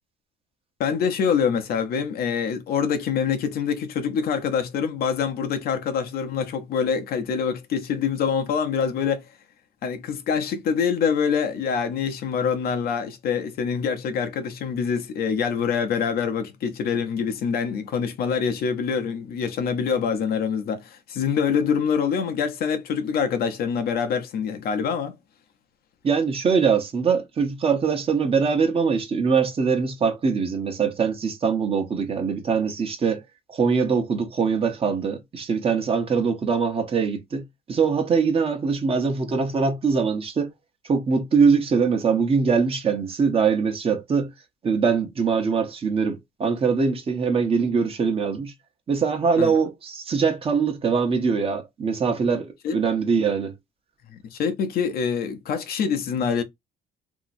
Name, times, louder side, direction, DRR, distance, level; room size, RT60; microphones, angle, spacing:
voice 1, 0.8-9.2 9.8-25.1 49.4-49.5 52.6-52.8 54.1-56.4, left 6 dB, 65° left, 0.7 m, -25 dB
voice 2, 26.0-33.2 33.5-40.5 40.9-44.3 44.6-48.5 48.9-53.5, right 5 dB, 35° right, 0.9 m, -22 dB
3.0 x 2.7 x 2.5 m
cardioid pair, 110°, 17 cm